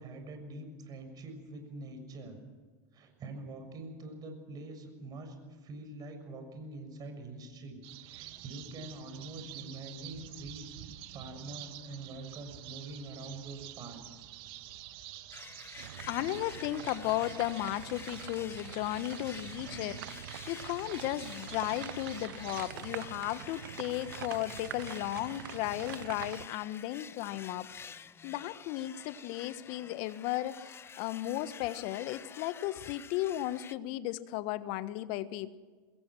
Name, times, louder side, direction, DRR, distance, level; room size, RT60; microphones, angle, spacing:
voice 1, 0.0-2.4 2.9-10.7 11.1-14.3 19.6-20.0, right 2 dB, 35° right, 6 dB, 6.7 m, -45 dB
sound 1, 7.8-22.7, right 13 dB, 55° right, 2.1 m, -49 dB
sound 2, 15.3-33.7, left 6 dB, 20° left, 0.7 m, -49 dB
sound 3, 15.8-26.5, right 14 dB, 75° right, 0.6 m, -45 dB
voice 2, 16.1-19.9 20.5-27.7 28.2-35.6, left 15 dB, 55° left, 14 dB, 1.3 m, -35 dB
24.5 x 21.0 x 6.2 m, 1.4 s
hypercardioid pair, 95°, 11 cm